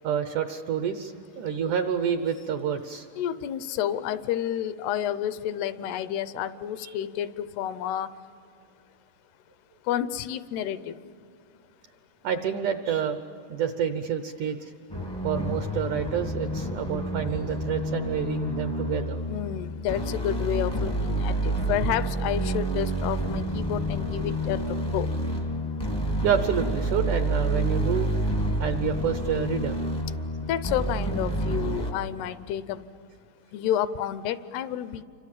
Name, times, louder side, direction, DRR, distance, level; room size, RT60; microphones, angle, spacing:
voice 1, 0.0-3.1 6.8-6.9 12.2-13.2 13.5-14.7 15.2-19.2 26.2-28.1 28.6-29.8, right 8 dB, 80° right, 9 dB, 1.8 m, -28 dB
voice 2, 3.2-8.1 9.9-11.0 19.2-25.1 30.5-32.8 33.5-35.0, left 10 dB, 80° left, 14 dB, 2.7 m, -30 dB
sound 1, 14.9-31.9, right 1 dB, 25° left, 0.5 m, -29 dB
30.0 x 25.5 x 7.5 m, 2.5 s
omnidirectional pair, 4.8 m